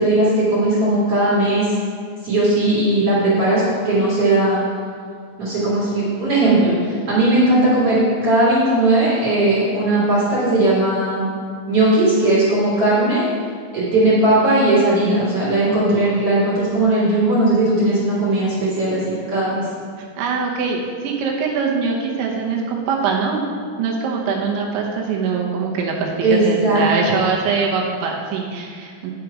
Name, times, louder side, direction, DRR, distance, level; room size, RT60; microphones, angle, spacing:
voice 1, 0.0-1.7 2.2-4.6 5.4-11.3 11.7-13.2 13.7-19.6 26.2-26.9, right 2 dB, 40° right, -9 dB, 2.5 m, -17 dB
voice 2, 20.2-23.4 23.8-29.1, right 5 dB, 80° right, -1 dB, 3.3 m, -22 dB
9.2 x 6.2 x 4.8 m, 2.1 s
omnidirectional pair, 5.3 m